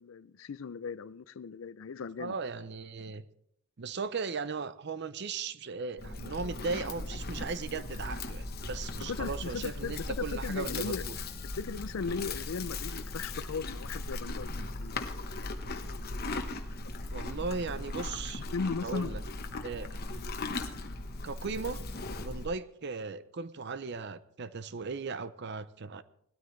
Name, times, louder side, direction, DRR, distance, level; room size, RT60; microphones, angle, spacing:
voice 1, 0.0-2.4 9.0-11.1 11.6-14.5 14.8-15.0 15.4-15.5 15.9-16.1 16.3-16.5 17.2-17.3 18.5-19.2, left 5 dB, 65° left, 0.4 m, -37 dB
voice 2, 2.2-3.2 3.8-11.2 17.1-18.4 18.8-19.2 19.6-19.9 21.2-21.8 22.2-26.0, right 4 dB, 55° right, 0.6 m, -37 dB
Livestock farm animals working animals, 6.0-22.5, left 2 dB, 45° left, 1.1 m, -38 dB
19.0 x 13.0 x 3.2 m
head